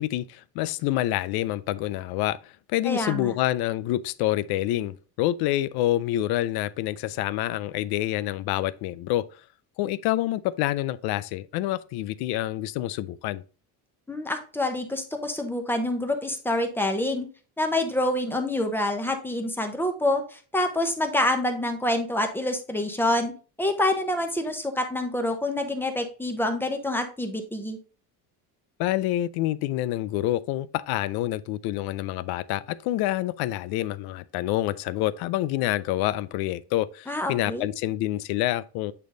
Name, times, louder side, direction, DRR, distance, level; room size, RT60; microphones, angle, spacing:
voice 1, 0.0-9.3 9.8-13.4 28.8-38.9, left 15 dB, 75° left, 0.5 m, -27 dB
voice 2, 2.8-3.3 14.1-17.3 17.6-23.3 23.6-27.8 37.1-37.7, left 1 dB, 5° left, 0.9 m, -27 dB
8.3 x 3.4 x 3.8 m
cardioid pair, 150°, 38 cm